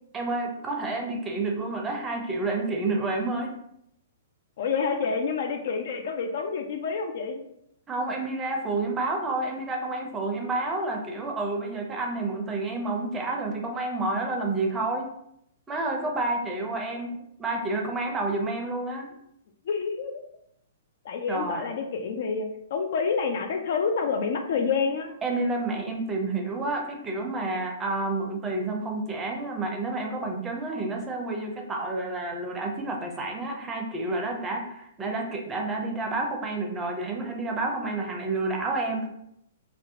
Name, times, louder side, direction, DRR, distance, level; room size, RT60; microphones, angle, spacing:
voice 1, 0.1-3.6 7.9-15.1 15.7-19.1 21.3-21.6 25.2-39.1, right 2 dB, 15° right, 1 dB, 0.5 m, -29 dB
voice 2, 4.6-7.4 19.7-20.2 21.0-25.2, left 5 dB, 55° left, 5 dB, 0.3 m, -28 dB
2.5 x 2.1 x 2.7 m, 0.75 s
figure-of-eight pair, 115°, 0 cm